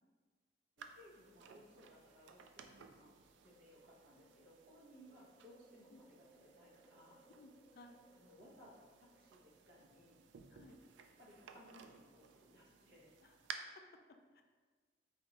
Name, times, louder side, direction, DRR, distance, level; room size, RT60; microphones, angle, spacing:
voice 1, 0.8-3.2 3.4-7.2 8.1-10.2 11.2-13.1, equal, 55° right, -6 dB, 1.2 m, -62 dB
sound 1, 0.8-13.5, right 7 dB, 90° right, 0.3 m, -58 dB
sound 2, 3.1-10.7, right 2 dB, 20° left, 1.3 m, -70 dB
voice 2, 7.4-8.0 10.5-10.8 13.2-13.4 13.8-14.4, left 2 dB, 55° left, 4 dB, 0.3 m, -60 dB
4.7 x 2.6 x 2.9 m, 1.4 s
head